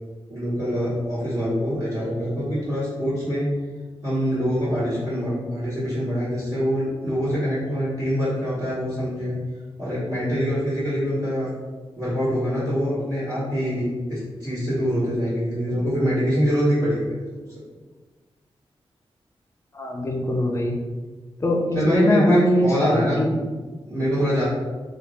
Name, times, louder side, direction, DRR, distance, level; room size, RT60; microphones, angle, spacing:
voice 1, 0.3-3.5 4.0-9.4 9.8-11.5 12.0-17.6 21.7-23.4 23.8-24.4, equal, 40° right, -13 dB, 1.4 m, -24 dB
voice 2, 19.7-20.7 21.4-23.3, left 1 dB, 30° left, 0 dB, 0.6 m, -22 dB
2.9 x 2.4 x 3.5 m, 1.3 s
wide cardioid pair, 110°, 10 cm